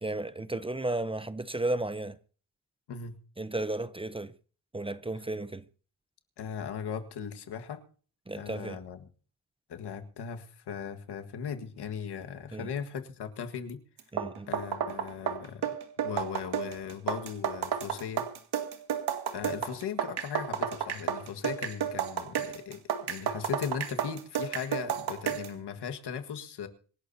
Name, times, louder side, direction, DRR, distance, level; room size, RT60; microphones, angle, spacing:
voice 1, 0.0-2.2 3.4-4.3 4.7-5.6 8.3-8.8 12.5-12.7 14.1-14.5, right 2 dB, 15° right, 0.7 m, -33 dB
voice 2, 6.4-7.8 8.3-9.1 9.7-13.8 14.5-15.7 16.0-18.3 19.3-26.7, left 7 dB, 85° left, 1.8 m, -38 dB
sound 1, 14.0-25.6, right 8 dB, 80° right, 2.4 m, -32 dB
26.0 x 12.0 x 2.8 m
cardioid pair, 100°, 39 cm